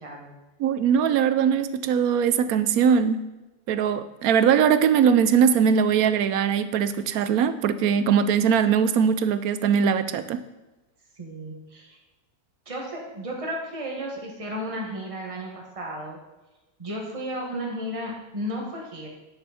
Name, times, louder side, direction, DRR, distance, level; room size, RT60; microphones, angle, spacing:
voice 1, 0.0-0.3 11.2-12.0 12.7-15.5 15.8-16.2 16.8-19.1, equal, 20° right, -2 dB, 1.9 m, -33 dB
voice 2, 0.6-3.2 3.7-10.4, right 7 dB, 75° right, 12 dB, 1.1 m, -21 dB
9.7 x 8.9 x 4.3 m, 1.1 s
omnidirectional pair, 1.6 m